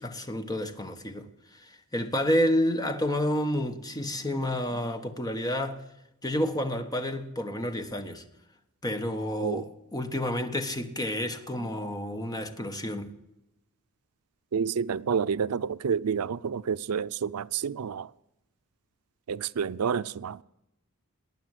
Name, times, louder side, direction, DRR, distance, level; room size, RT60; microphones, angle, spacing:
voice 1, 0.0-5.8 6.2-8.2 8.8-13.1, equal, 15° left, 1.3 m, -30 dB
voice 2, 14.5-18.1 19.3-20.4, right 6 dB, 85° right, 0.5 m, -29 dB
19.5 x 9.2 x 8.0 m
head